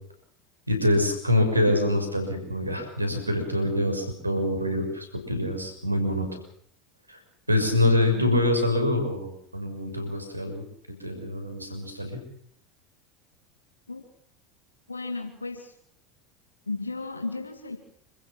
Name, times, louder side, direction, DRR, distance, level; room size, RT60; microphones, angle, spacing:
voice 1, 0.7-6.3 7.1-7.2 7.5-10.6 11.0-12.1, left 1 dB, 90° right, 6 dB, 6.4 m, -25 dB
voice 2, 14.9-15.7 16.7-17.8, left 3 dB, 85° left, 5 dB, 2.3 m, -34 dB
27.5 x 15.5 x 7.5 m, 0.67 s
figure-of-eight pair, 75°, 0 cm